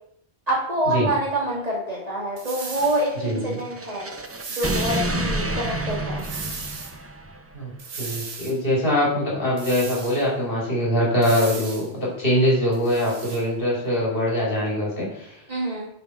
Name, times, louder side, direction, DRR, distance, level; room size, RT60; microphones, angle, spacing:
voice 1, 0.5-4.1 4.5-6.2 15.5-15.9, right 1 dB, 35° right, -3 dB, 2.1 m, -26 dB
sound 1, 2.4-3.0 4.2-5.0 6.2-6.9 7.8-8.6 9.6-10.2 11.2-11.9 12.7-13.4, right 4 dB, 75° right, 1.4 m, -36 dB
sound 2, 2.6-7.4, right 1 dB, 20° right, 0.4 m, -29 dB
voice 2, 3.2-3.6 7.5-7.7 8.0-15.4, equal, 55° left, -4 dB, 3.0 m, -23 dB
5.7 x 5.7 x 5.7 m, 0.70 s
omnidirectional pair, 1.1 m